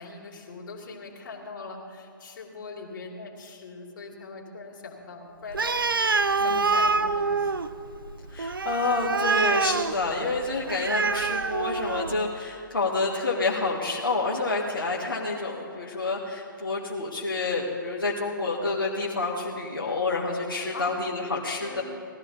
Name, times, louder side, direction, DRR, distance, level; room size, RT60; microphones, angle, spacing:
voice 1, 0.0-7.5 20.7-20.9 21.6-21.8, left 3 dB, 65° left, -1 dB, 2.8 m, -41 dB
Animal, 5.5-12.3, right 4 dB, 85° right, 0.6 m, -26 dB
voice 2, 6.4-6.8 8.3-21.8, left 3 dB, 90° left, -4 dB, 1.8 m, -28 dB
18.5 x 13.0 x 4.0 m, 2.7 s
figure-of-eight pair, 125°, 11 cm